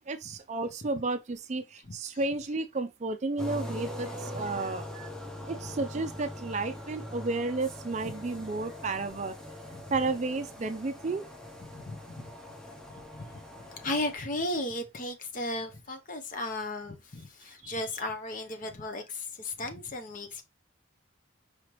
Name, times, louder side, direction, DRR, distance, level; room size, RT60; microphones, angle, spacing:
voice 1, 0.1-5.1 5.5-9.4 9.9-11.2 17.6-17.7, right 3 dB, 35° right, 0.4 m, -32 dB
sound 1, 3.4-14.1, left 1 dB, 5° left, 0.7 m, -42 dB
voice 2, 4.3-4.7 9.7-10.0 11.7-12.3 12.9-20.4, left 2 dB, 40° left, 0.7 m, -36 dB
4.8 x 3.2 x 3.0 m
head